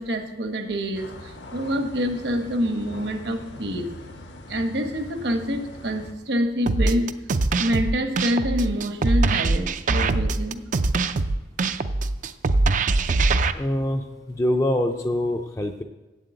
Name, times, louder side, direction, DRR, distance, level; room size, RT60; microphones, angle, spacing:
voice 1, 0.0-3.9 4.5-7.1 7.6-10.6, equal, 65° right, 6 dB, 1.1 m, -26 dB
sound 1, 0.9-6.1, left 1 dB, 75° left, 1.2 m, -42 dB
sound 2, 6.7-13.5, right 3 dB, 45° right, 0.4 m, -22 dB
voice 2, 13.5-15.8, left 1 dB, 15° left, 4 dB, 0.4 m, -25 dB
8.3 x 7.7 x 8.1 m, 1.1 s
head